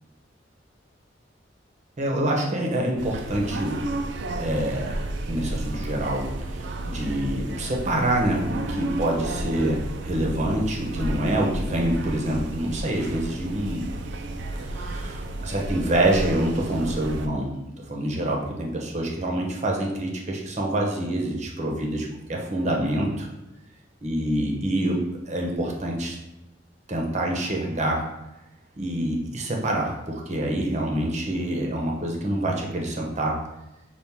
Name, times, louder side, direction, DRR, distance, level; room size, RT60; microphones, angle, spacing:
voice 1, 2.0-3.8 4.4-4.9 5.3-13.9 14.7-17.6 17.9-23.3 24.0-26.2 26.9-28.0 28.8-33.4, right 1 dB, 40° right, -1 dB, 0.8 m, -26 dB
sound 1, 3.0-17.3, right 1 dB, 70° right, 0.4 m, -32 dB
5.7 x 2.4 x 3.5 m, 0.93 s
head